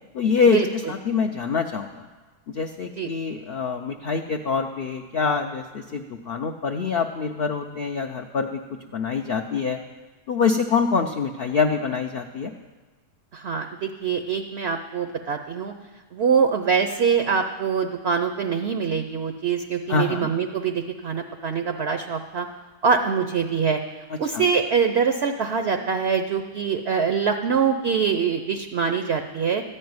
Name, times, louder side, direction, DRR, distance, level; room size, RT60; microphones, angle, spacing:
voice 1, 0.1-2.1 2.5-8.6 8.9-9.8 10.3-12.5 19.9-20.3 24.1-24.4, left 5 dB, 70° left, 3 dB, 0.5 m, -25 dB
voice 2, 13.3-15.7 16.1-22.5 22.8-23.8 24.2-29.6, right 6 dB, 60° right, 6 dB, 0.7 m, -24 dB
14.0 x 5.5 x 9.5 m, 1.3 s
omnidirectional pair, 1.7 m